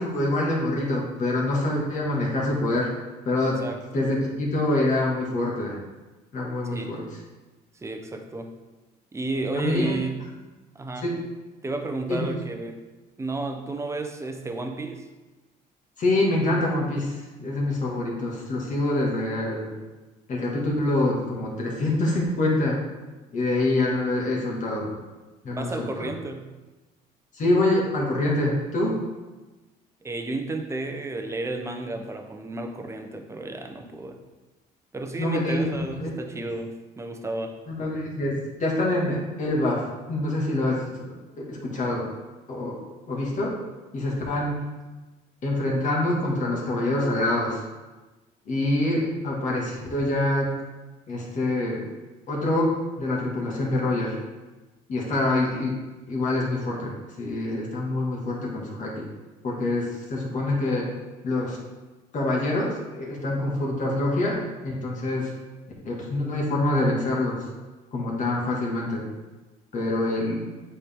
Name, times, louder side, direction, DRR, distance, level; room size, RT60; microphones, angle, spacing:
voice 1, 0.0-2.9 3.3-3.6 3.9-5.8 6.3-7.0 9.6-10.0 11.0-11.2 12.1-12.3 16.0-19.7 20.3-22.8 23.3-24.9 25.4-26.1 27.3-29.0 35.2-36.5 37.7-42.1 42.5-42.8 43.1-43.6 43.9-44.7 45.4-47.6 48.5-50.5 51.1-51.9 52.3-54.2 54.9-55.7 56.1-59.1 59.4-60.9 61.2-61.6 62.1-65.3 65.8-67.4 67.9-69.1 69.7-70.4, left 2 dB, 50° left, -3 dB, 2.0 m, -26 dB
voice 2, 3.6-4.0 6.7-7.0 7.7-8.5 9.1-10.2 10.7-11.1 11.6-12.8 13.2-15.1 25.5-26.5 30.0-34.2 34.9-37.6, right 2 dB, 15° right, 5 dB, 0.8 m, -32 dB
8.4 x 4.6 x 3.6 m, 1.2 s
cardioid pair, 110°, 17 cm